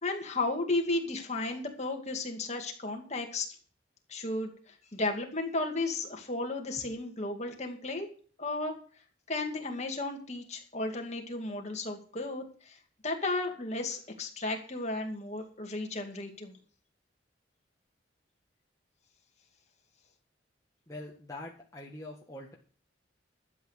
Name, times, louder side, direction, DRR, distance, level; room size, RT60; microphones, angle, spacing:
voice 1, 0.0-3.5 4.1-8.1 8.4-8.8 9.3-16.5, left 2 dB, 35° left, 3 dB, 2.3 m, -34 dB
voice 2, 20.9-22.5, left 1 dB, 20° left, -2 dB, 1.6 m, -44 dB
12.5 x 8.4 x 6.6 m, 0.43 s
head